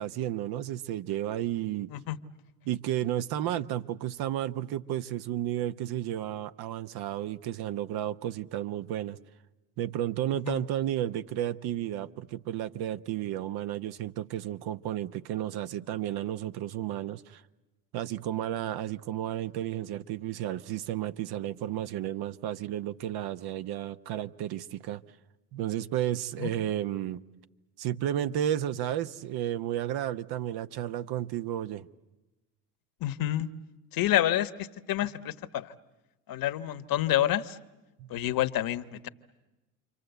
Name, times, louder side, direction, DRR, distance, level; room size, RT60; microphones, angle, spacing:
voice 1, 0.0-1.9 2.6-9.2 9.8-17.4 17.9-25.0 25.5-27.2 27.8-31.9 38.0-38.1, right 12 dB, 55° right, 1.1 m, -32 dB
voice 2, 33.0-33.5 33.9-35.7 36.3-37.6 38.1-39.1, left 13 dB, 50° left, 1.3 m, -28 dB
29.0 x 24.5 x 8.2 m
hypercardioid pair, 75°, 44 cm